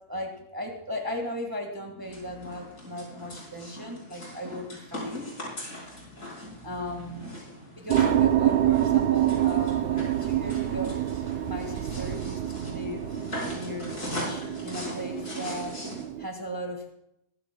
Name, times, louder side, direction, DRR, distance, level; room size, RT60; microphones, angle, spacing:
voice 1, 0.1-5.3 6.6-7.5 7.8-11.0 11.4-13.1 13.5-15.8 16.2-16.9, equal, 15° right, 2 dB, 1.7 m, -37 dB
sound 1, 2.0-16.1, left 1 dB, 60° left, 5.0 m, -40 dB
sound 2, 7.9-16.3, right 12 dB, 80° right, 0.5 m, -27 dB
21.0 x 13.5 x 2.2 m, 0.82 s
omnidirectional pair, 1.6 m